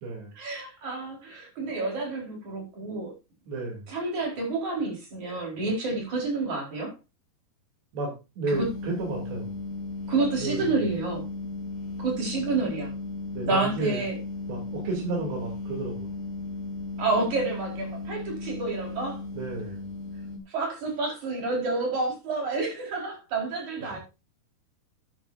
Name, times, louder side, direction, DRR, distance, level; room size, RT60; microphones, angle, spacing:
voice 1, 0.4-3.1 3.9-6.9 8.5-8.7 10.1-11.3 12.0-12.9 13.4-14.2 17.0-19.2 20.5-24.0, right 3 dB, 45° right, 5.8 m, -29 dB
voice 2, 3.5-3.9 7.9-9.6 10.4-10.8 13.3-14.0 14.5-16.1 19.3-19.9 23.8-24.0, right 3 dB, 85° right, 5.3 m, -32 dB
sound 1, 8.5-20.4, left 3 dB, 60° left, 5.4 m, -36 dB
12.5 x 11.0 x 2.6 m
omnidirectional pair, 4.7 m